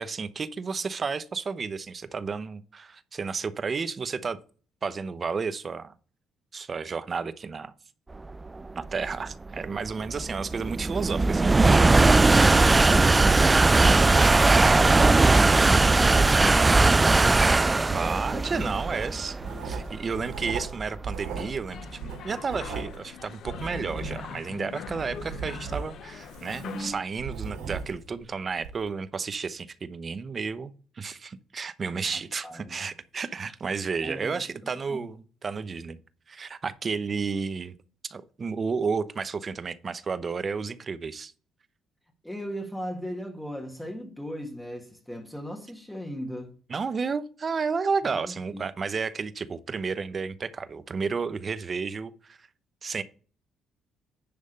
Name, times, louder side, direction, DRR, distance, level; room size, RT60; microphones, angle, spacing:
voice 1, 0.0-4.4 4.8-5.9 6.5-7.7 8.8-12.1 17.9-19.3 19.6-36.0 36.3-37.7 38.0-41.3 46.7-52.5 52.8-53.0, right 5 dB, 40° right, 0.8 m, -32 dB
sound 1, 8.5-21.8, right 3 dB, 20° right, 0.3 m, -20 dB
voice 2, 12.9-19.2 26.6-27.0 32.0-32.8 34.0-34.4 34.9-35.1 42.2-46.6 48.0-48.7, equal, 5° left, 1.7 m, -38 dB
Writing, 19.4-21.7 22.0-24.5 24.9-28.1 28.6-28.8, right 5 dB, 85° right, 3.8 m, -37 dB
sound 2, 21.7-26.9, left 7 dB, 65° left, 0.8 m, -41 dB
10.5 x 3.5 x 6.6 m
supercardioid pair, 70°, 0 cm